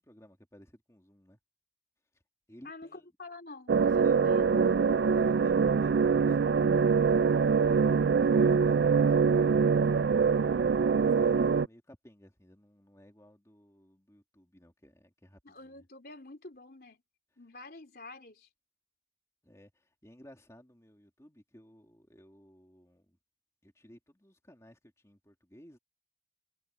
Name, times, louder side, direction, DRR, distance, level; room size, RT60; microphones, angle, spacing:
voice 1, 0.0-1.4 2.1-2.2 2.5-3.1 4.0-4.2 5.1-6.6 7.4-9.6 10.1-10.2 10.9-15.9 19.4-23.2 23.6-25.8, equal, 15° left, 2.8 m, -56 dB
voice 2, 2.6-4.9 15.4-17.0 17.4-18.5, left 2 dB, 55° left, 3.8 m, -48 dB
sound 1, 3.7-11.7, right 5 dB, 75° right, 0.4 m, -24 dB
head